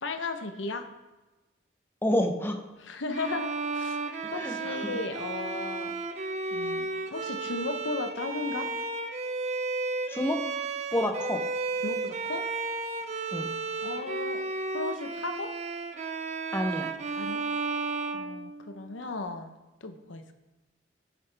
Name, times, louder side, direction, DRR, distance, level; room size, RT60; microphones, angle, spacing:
voice 1, 0.0-0.9 2.8-5.9 6.5-8.7 11.8-12.5 13.8-14.4 14.7-15.5 17.2-17.4 18.1-19.5 19.8-20.3, left 3 dB, 90° left, 8 dB, 0.8 m, -35 dB
voice 2, 2.0-2.6 4.2-4.9 10.1-10.4 10.9-11.4 13.3-13.5 16.5-16.9, left 1 dB, 10° left, 5 dB, 0.7 m, -29 dB
Bowed string instrument, 3.1-19.0, right 3 dB, 35° right, 0.6 m, -33 dB
11.5 x 6.9 x 3.4 m, 1.1 s
head